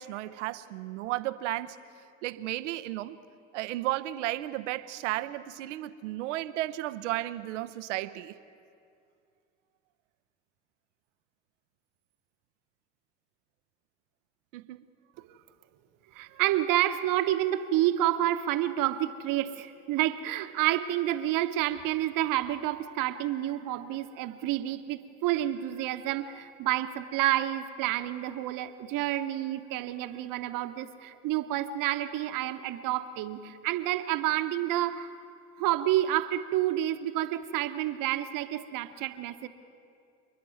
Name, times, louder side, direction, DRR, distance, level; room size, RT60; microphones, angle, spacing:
voice 1, 0.0-1.8 2.2-3.2 3.5-8.4 14.5-14.9, right 16 dB, 80° right, 13 dB, 0.8 m, -34 dB
voice 2, 16.1-35.1 35.6-39.5, right 13 dB, 60° right, 10 dB, 1.2 m, -29 dB
28.0 x 10.5 x 9.3 m, 2.4 s
hypercardioid pair, 70°, 36 cm